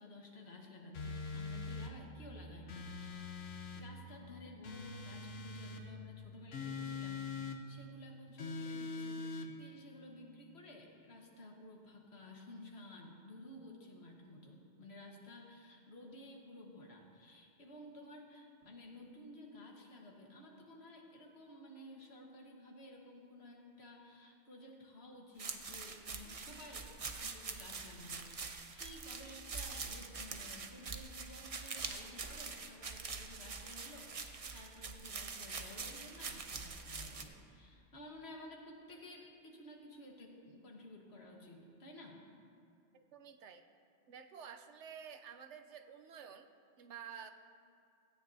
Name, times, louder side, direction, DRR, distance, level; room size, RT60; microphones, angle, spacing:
voice 1, 0.0-3.3 3.7-7.2 7.7-42.2, left 1 dB, 60° left, 0 dB, 1.6 m, -54 dB
sound 1, 0.9-2.0 2.7-3.9 4.6-5.9 6.5-7.6 8.4-9.5, left 4 dB, 90° left, 1.2 m, -42 dB
sound 2, 25.4-37.2, right 4 dB, 40° right, 0.6 m, -45 dB
voice 2, 42.9-43.6 44.1-46.5 46.8-47.3, right 7 dB, 75° right, 8 dB, 1.0 m, -51 dB
17.0 x 13.0 x 2.7 m, 2.5 s
omnidirectional pair, 1.2 m